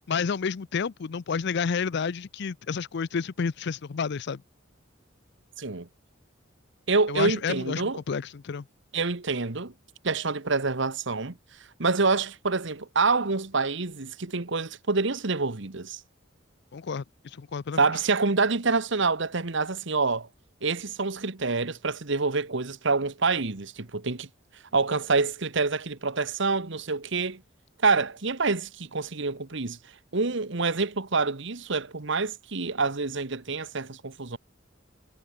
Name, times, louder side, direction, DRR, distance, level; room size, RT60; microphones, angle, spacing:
voice 1, 0.1-4.4 7.1-8.6 16.7-17.8, left 5 dB, 60° left, 0.5 m, -30 dB
voice 2, 5.6-5.9 6.9-8.0 8.9-9.7 10.0-11.4 11.8-16.0 17.8-20.3 20.6-24.3 24.7-27.4 27.8-29.8 30.1-34.4, right 4 dB, 65° right, 1.4 m, -27 dB
head